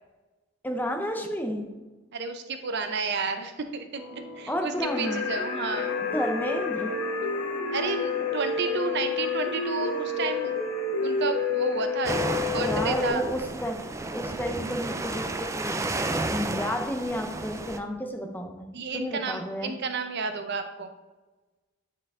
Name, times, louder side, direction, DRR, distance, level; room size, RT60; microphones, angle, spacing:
voice 1, 0.6-1.7 4.5-5.2 6.1-6.9 12.5-13.8 14.1-15.9 16.2-19.7, equal, 10° left, 3 dB, 0.7 m, -31 dB
voice 2, 2.1-6.0 7.7-10.5 11.0-12.2 12.5-13.2 18.7-20.9, right 4 dB, 55° right, 8 dB, 0.6 m, -31 dB
sound 1, 3.9-12.3, right 1 dB, 30° left, 1.9 m, -44 dB
sound 2, 4.8-13.1, left 4 dB, 90° left, 1.5 m, -29 dB
sound 3, 12.0-17.8, right 2 dB, 15° right, 0.3 m, -31 dB
9.4 x 4.7 x 3.6 m, 1.2 s
head